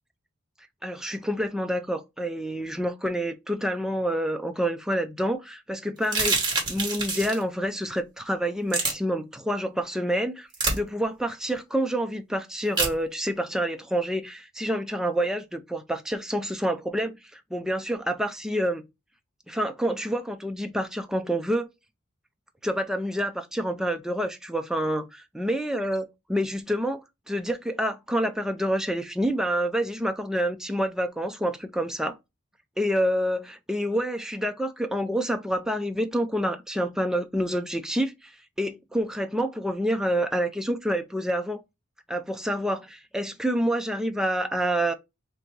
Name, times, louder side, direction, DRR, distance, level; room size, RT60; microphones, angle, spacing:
voice 1, 0.8-10.5 10.7-18.8 19.5-21.7 22.6-26.0 26.3-32.2 32.8-38.3 38.6-41.6 42.1-44.9, equal, 5° right, 0.4 m, -28 dB
sound 1, 6.0-7.4 8.7-8.9 10.5-10.8 12.8-12.9, right 3 dB, 20° right, 1.4 m, -25 dB
3.4 x 2.7 x 4.5 m
head